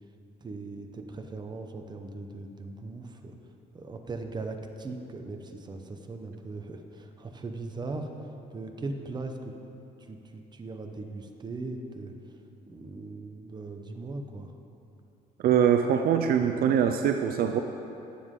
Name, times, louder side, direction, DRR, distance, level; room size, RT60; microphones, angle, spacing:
voice 1, 0.4-3.3 3.7-8.1 8.5-9.5 10.1-12.1 12.7-14.5, right 3 dB, 25° right, 5 dB, 1.0 m, -39 dB
voice 2, 15.4-17.6, right 8 dB, 65° right, 6 dB, 0.6 m, -23 dB
20.0 x 7.4 x 3.8 m, 2.8 s
cardioid pair, 110°, 17 cm